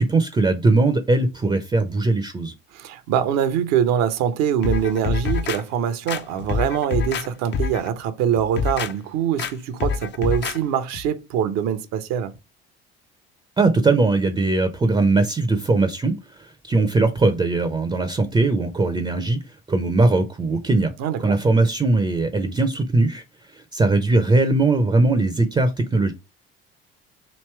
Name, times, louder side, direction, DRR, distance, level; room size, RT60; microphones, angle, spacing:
voice 1, 0.0-2.5 13.6-20.9 21.2-26.1, right 2 dB, 15° right, 0.6 m, -20 dB
voice 2, 2.7-12.3 21.0-21.4, right 9 dB, 55° right, 0.7 m, -23 dB
sound 1, 4.6-5.6 6.1-7.3 7.5-7.9 8.4-8.9 9.4-9.5 9.8-10.6 10.9-11.1, left 6 dB, 35° left, 0.5 m, -26 dB
3.2 x 2.9 x 4.5 m
figure-of-eight pair, 55°, 31 cm